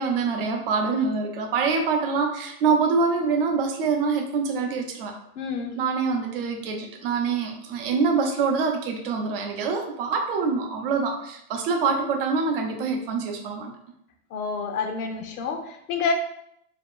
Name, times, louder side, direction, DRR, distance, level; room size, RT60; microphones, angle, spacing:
voice 1, 0.0-5.1 5.8-13.7, right 4 dB, 40° right, 3 dB, 0.6 m, -25 dB
voice 2, 5.4-5.7 14.3-16.1, left 5 dB, 75° left, 6 dB, 0.8 m, -28 dB
5.0 x 2.8 x 2.4 m, 0.75 s
supercardioid pair, 170°, 45 cm